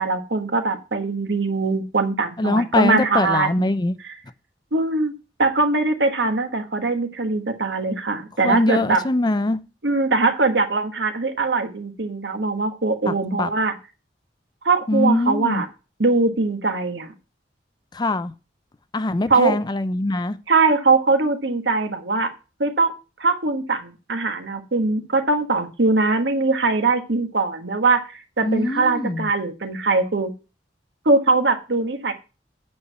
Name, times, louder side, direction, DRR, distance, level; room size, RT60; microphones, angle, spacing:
voice 1, 0.0-3.7 4.0-4.2 4.7-5.1 5.4-9.0 9.8-13.8 14.6-15.7 16.0-17.1 19.3-19.6 20.5-22.3 22.6-22.9 23.2-30.3 31.0-32.1, right 3 dB, 75° right, 1.4 m, -21 dB
voice 2, 2.4-3.9 8.4-9.6 13.1-13.5 14.9-15.6 17.9-18.3 18.9-20.4 28.4-29.3, left 2 dB, 25° left, 0.5 m, -22 dB
8.6 x 4.5 x 6.7 m
head